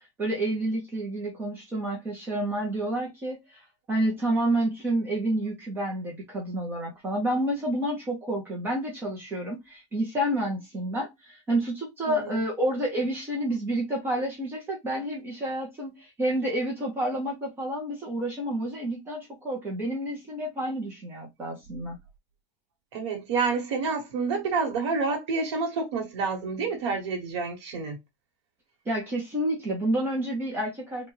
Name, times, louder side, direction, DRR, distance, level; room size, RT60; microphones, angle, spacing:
voice 1, 0.2-3.6 3.9-22.0 28.9-31.1, right 1 dB, 15° right, 0.8 m, -29 dB
voice 2, 12.1-12.4 22.9-28.0, right 4 dB, 75° right, 1.3 m, -28 dB
3.4 x 2.4 x 3.1 m
supercardioid pair, 180°, 15 cm